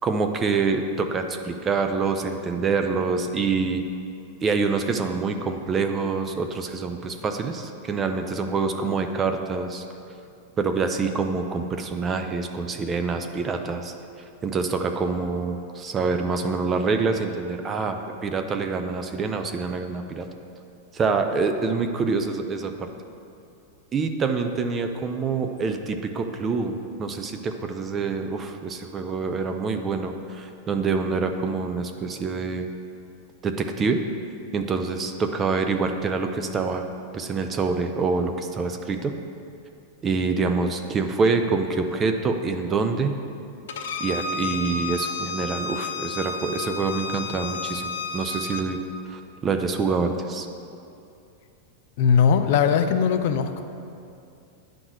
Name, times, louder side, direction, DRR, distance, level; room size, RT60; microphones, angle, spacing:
voice 1, 0.0-3.8 4.4-9.8 10.6-13.9 14.4-20.3 20.9-22.9 23.9-32.7 33.4-34.0 34.5-36.9 37.1-39.1 40.0-43.1 44.0-48.8 49.1-50.5, right 4 dB, 15° right, 6 dB, 0.4 m, -26 dB
Bowed string instrument, 43.7-48.6, left 4 dB, 85° left, 0.6 m, -31 dB
voice 2, 52.0-53.6, left 7 dB, 50° left, 8 dB, 0.4 m, -20 dB
10.0 x 4.0 x 6.2 m, 2.6 s
supercardioid pair, 175°, 0 cm